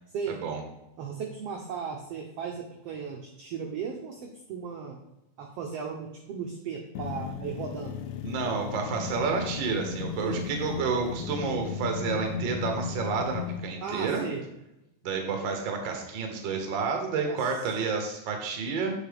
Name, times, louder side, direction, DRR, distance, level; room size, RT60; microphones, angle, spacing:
voice 1, 0.3-0.6 8.2-14.2 15.0-18.9, right 5 dB, 65° right, 4 dB, 1.2 m, -30 dB
voice 2, 1.0-5.0 5.4-8.0 10.2-10.4 13.8-14.4 17.2-17.4, right 6 dB, 80° right, 1 dB, 1.4 m, -36 dB
sound 1, 6.9-13.7, left 6 dB, 80° left, 1.6 m, -35 dB
8.5 x 5.0 x 3.5 m, 0.91 s
omnidirectional pair, 3.7 m